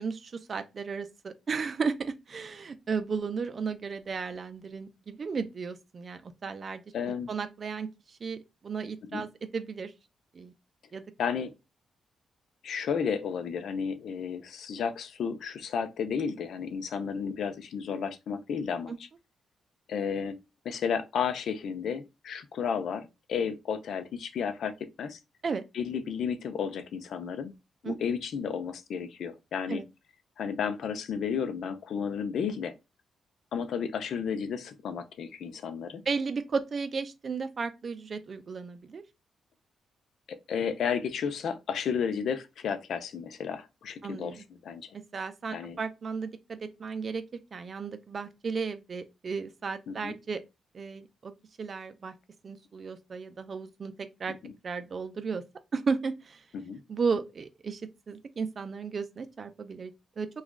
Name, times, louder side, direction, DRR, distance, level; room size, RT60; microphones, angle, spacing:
voice 1, 0.0-6.8 7.3-7.9 8.2-8.4 8.6-9.3 9.5-9.9 10.3-10.5 10.9-11.0 18.9-19.0 25.4-25.6 27.8-28.0 29.7-29.8 36.1-39.0 44.0-44.4 45.1-47.2 47.5-50.4 50.7-51.3 51.6-52.1 52.4-54.4 54.6-55.4 55.7-56.4 56.9-57.8 58.1-60.3, right 5 dB, 45° right, 0.5 m, -34 dB
voice 2, 6.9-7.3 9.1-9.2 11.2-11.5 12.6-19.1 19.9-20.4 20.6-25.2 25.7-27.5 27.8-29.8 30.4-32.7 33.5-36.0 40.3-44.9 45.5-45.8 49.9-50.2 54.3-54.5 56.5-56.8, left 7 dB, 75° left, 0.5 m, -32 dB
3.0 x 2.4 x 3.6 m
cardioid pair, 95°, 0 cm